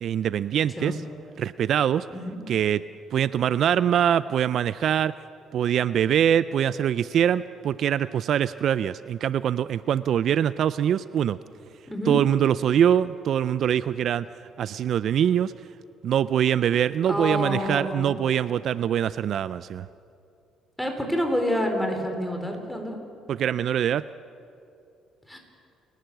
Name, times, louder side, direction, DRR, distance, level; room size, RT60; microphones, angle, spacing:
voice 1, 0.0-1.0 1.4-2.1 2.5-2.8 3.1-5.1 5.5-11.4 12.1-14.3 14.6-15.5 16.0-19.9 23.3-24.0, right 9 dB, 60° right, 16 dB, 0.4 m, -23 dB
voice 2, 11.9-12.2 17.1-18.2 20.8-23.0 25.3-25.4, equal, ahead, 3 dB, 3.8 m, -28 dB
29.5 x 11.5 x 7.9 m, 2.6 s
cardioid pair, 100°, 0 cm